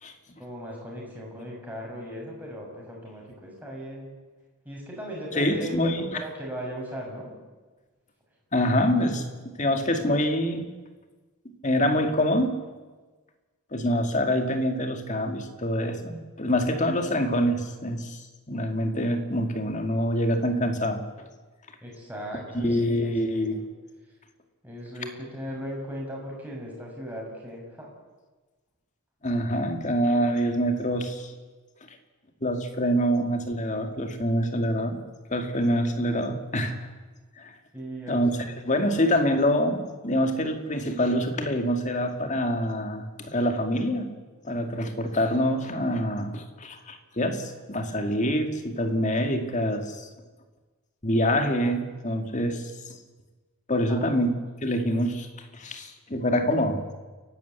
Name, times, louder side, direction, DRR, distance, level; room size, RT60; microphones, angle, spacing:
voice 1, 0.4-4.1 4.6-7.3 21.8-23.6 24.6-27.9 37.7-38.4 53.9-54.1 54.7-54.9, equal, 10° right, -3 dB, 6.4 m, -38 dB
voice 2, 5.3-6.1 8.5-10.7 11.6-12.5 13.7-21.3 22.5-23.6 29.2-31.3 31.9-32.0 32.4-35.0 35.3-36.8 37.4-37.5 38.1-38.3 38.6-44.1 44.4-50.1 51.0-53.0 53.7-54.3 54.6-55.3 55.5-56.8, equal, 35° left, 5 dB, 2.3 m, -26 dB
29.5 x 12.0 x 8.4 m, 1.3 s
head